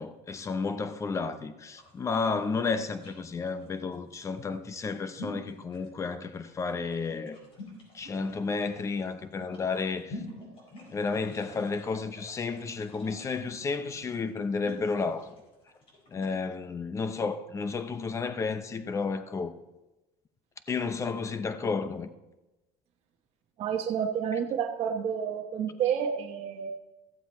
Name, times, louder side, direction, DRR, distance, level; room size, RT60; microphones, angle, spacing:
voice 1, 0.0-7.4 7.9-10.2 10.9-15.3 16.1-19.5 20.7-22.1, left 4 dB, 25° left, 0.7 m, -32 dB
sound 1, 1.7-16.4, left 1 dB, 45° left, 4.2 m, -47 dB
voice 2, 23.6-26.7, right 8 dB, 50° right, 1.0 m, -30 dB
14.5 x 7.7 x 4.2 m
cardioid pair, 135°, 13 cm